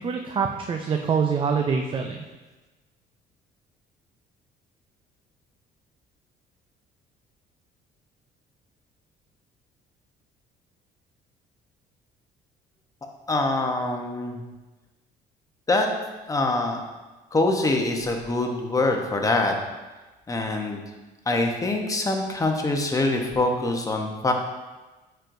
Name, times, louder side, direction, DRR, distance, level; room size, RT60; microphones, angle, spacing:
voice 1, 0.0-2.2, right 6 dB, 30° right, 3 dB, 0.4 m, -25 dB
voice 2, 13.3-14.4 15.7-15.9 16.3-16.8 17.3-19.5 20.3-20.8 21.3-24.3, left 2 dB, 20° left, 3 dB, 0.9 m, -24 dB
9.8 x 4.5 x 2.6 m, 1.2 s
cardioid pair, 110°, 17 cm